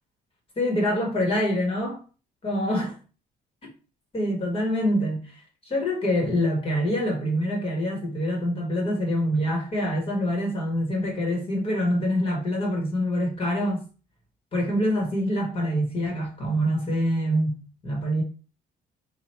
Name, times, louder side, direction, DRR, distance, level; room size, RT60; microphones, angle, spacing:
voice 1, 0.6-2.0 2.4-2.9 4.1-13.8 14.5-18.2, equal, 35° left, 1.5 m, -25 dB
2.9 x 2.5 x 4.3 m
cardioid pair, 110°, 17 cm